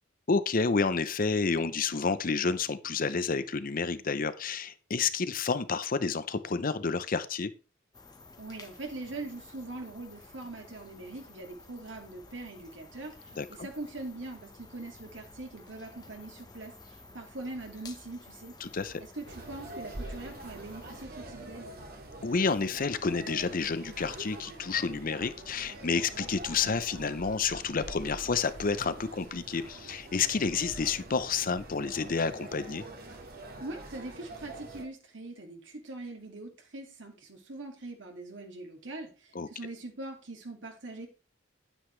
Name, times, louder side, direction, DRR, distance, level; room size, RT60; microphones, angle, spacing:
voice 1, 0.3-7.5 13.4-13.7 18.6-19.0 22.2-32.8 39.3-39.5, left 4 dB, 45° left, 13 dB, 0.7 m, -30 dB
sound 1, 7.9-21.1, left 2 dB, 20° left, 1.1 m, -52 dB
voice 2, 8.4-16.7 17.1-18.5 19.0-21.7 33.6-41.1, right 2 dB, 65° right, 3 dB, 2.5 m, -42 dB
sound 2, 19.3-34.9, right 2 dB, 50° right, 2.1 m, -45 dB
9.8 x 9.2 x 3.2 m, 0.31 s
head